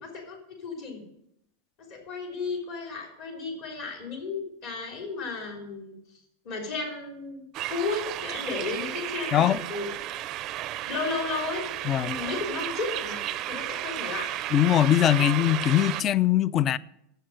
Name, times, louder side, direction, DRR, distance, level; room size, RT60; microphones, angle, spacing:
voice 1, 0.0-1.0 1.9-5.9 6.5-9.9 10.9-11.6 12.0-14.3, left 4 dB, 50° left, 3.5 m, -34 dB
sound 1, 7.5-16.0, right 14 dB, 40° right, 0.4 m, -33 dB
voice 2, 11.9-12.2 14.5-16.8, left 11 dB, 30° left, 0.3 m, -21 dB
7.9 x 6.5 x 7.6 m
supercardioid pair, 140°, 0 cm